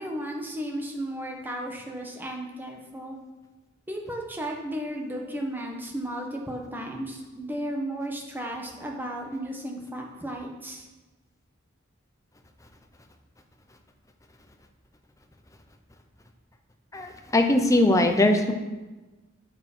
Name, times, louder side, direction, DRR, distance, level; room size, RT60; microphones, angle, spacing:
voice 1, 0.0-3.2 3.9-10.8, right 1 dB, 10° right, 0 dB, 1.3 m, -34 dB
voice 2, 16.9-18.5, left 1 dB, 15° left, 5 dB, 0.8 m, -21 dB
9.2 x 6.8 x 6.2 m, 1.2 s
head